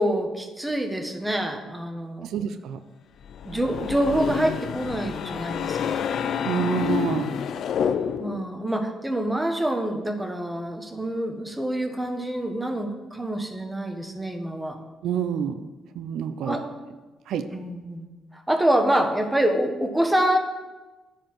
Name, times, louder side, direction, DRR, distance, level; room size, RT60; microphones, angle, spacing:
voice 1, 0.0-2.3 3.4-6.0 6.5-7.0 8.2-14.8 16.4-16.6 17.5-20.4, right 1 dB, 10° right, 4 dB, 1.3 m, -26 dB
voice 2, 2.2-2.8 6.4-7.3 15.0-15.7 16.0-16.6 17.3-17.5, right 8 dB, 75° right, 9 dB, 0.6 m, -27 dB
sound 1, 3.2-8.5, left 8 dB, 65° left, 0.5 m, -28 dB
9.9 x 4.7 x 7.7 m, 1.2 s
cardioid pair, 90°, 0 cm